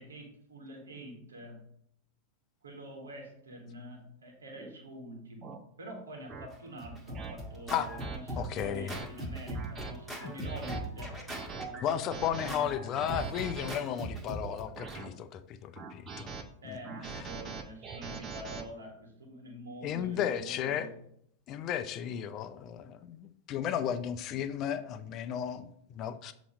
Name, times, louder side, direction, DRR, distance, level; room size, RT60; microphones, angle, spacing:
voice 1, 0.0-1.7 2.6-12.9 16.6-20.9, right 1 dB, 80° right, 1 dB, 1.4 m, -46 dB
sound 1, 4.6-4.8 5.4-5.6 6.3-6.5 7.1-7.3 8.0-8.2 8.7-9.1 9.5-9.9 10.4-10.8 11.3-11.7 12.1-12.5 12.9-13.7 14.4-15.1 15.7-16.4 16.8-18.6, right 5 dB, 35° right, 0.8 m, -42 dB
Scratching (performance technique), 6.5-15.0, right 1 dB, 5° right, 1.4 m, -40 dB
voice 2, 8.3-8.9 10.2-10.3 11.8-16.4 16.7-16.8 19.8-20.9 21.5-26.3, left 9 dB, 40° left, 11 dB, 0.5 m, -34 dB
7.0 x 3.0 x 5.1 m, 0.70 s
hypercardioid pair, 95°, 0 cm